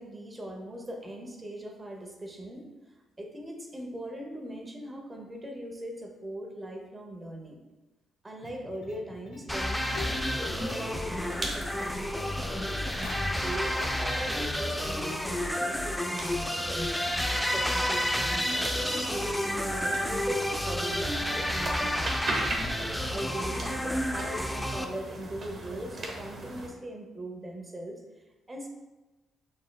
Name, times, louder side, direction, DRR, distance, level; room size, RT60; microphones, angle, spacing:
voice 1, 0.0-2.7 3.2-7.6 8.2-12.9 13.2-17.0 17.5-22.5 23.1-28.0 28.5-28.7, right 1 dB, 20° right, 2 dB, 0.8 m, -40 dB
sound 1, 8.4-11.1 11.3-14.1, left 3 dB, 80° left, 1.1 m, -46 dB
sound 2, 9.5-24.9, left 1 dB, 5° left, 0.4 m, -30 dB
sound 3, 9.8-26.7, right 2 dB, 50° right, 1.2 m, -40 dB
6.2 x 3.6 x 2.3 m, 1.1 s
cardioid pair, 90°, 0 cm